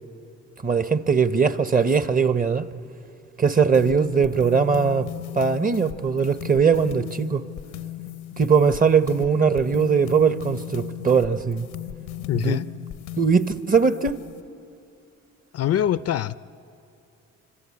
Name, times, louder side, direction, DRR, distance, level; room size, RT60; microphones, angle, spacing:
voice 1, 0.6-2.7 3.4-5.1 5.3-7.4 8.4-11.7 12.3-12.6 13.2-14.1, right 5 dB, 30° right, 0.9 m, -20 dB
sound 1, 3.7-14.4, left 13 dB, 80° left, 0.8 m, -37 dB
voice 2, 12.3-12.7 15.5-16.4, left 11 dB, 55° left, 0.5 m, -24 dB
25.5 x 25.0 x 8.5 m
cardioid pair, 90°, 30 cm